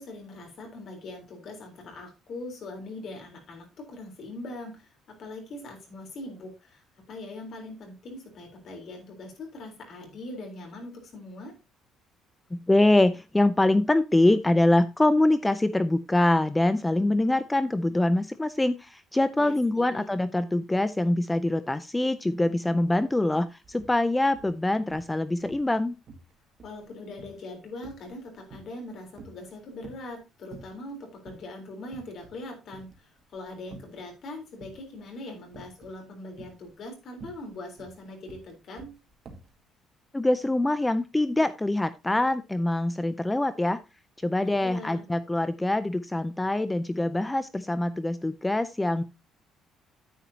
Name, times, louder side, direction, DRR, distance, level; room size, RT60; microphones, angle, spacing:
voice 1, 0.0-6.8 7.1-11.5 19.4-20.1 26.6-38.9 44.4-45.0, left 2 dB, 50° left, 3 dB, 3.8 m, -41 dB
voice 2, 12.5-25.9 40.1-43.8 44.2-49.0, left 1 dB, 10° left, 13 dB, 0.4 m, -24 dB
sound 1, 22.8-22.9 23.2-24.0 24.3-25.2 25.4-25.8 26.1-28.9 29.2-30.1 30.5-30.9 31.3-31.4 31.9-32.4 32.7-34.1 34.6-35.0 35.5-36.0 36.3-39.6, right 3 dB, 35° right, 1.9 m, -48 dB
9.8 x 8.8 x 2.8 m, 0.27 s
cardioid pair, 155°, 0 cm